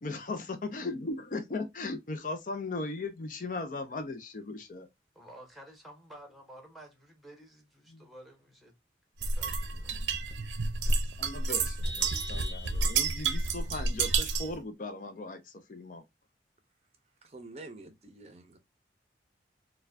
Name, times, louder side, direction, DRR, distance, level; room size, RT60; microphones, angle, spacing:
voice 1, 0.0-4.9 7.9-8.0 9.9-10.0 11.2-16.0, left 3 dB, 45° left, 0.5 m, -38 dB
voice 2, 5.1-8.7 9.2-10.0, right 1 dB, ahead, 1.0 m, -52 dB
sound 1, 9.2-14.6, right 4 dB, 85° right, 0.6 m, -30 dB
Vehicle horn car horn honking, 11.8-13.2, equal, 65° left, 1.0 m, -43 dB
voice 3, 17.2-18.6, right 2 dB, 35° right, 0.6 m, -48 dB
4.4 x 2.2 x 2.5 m
head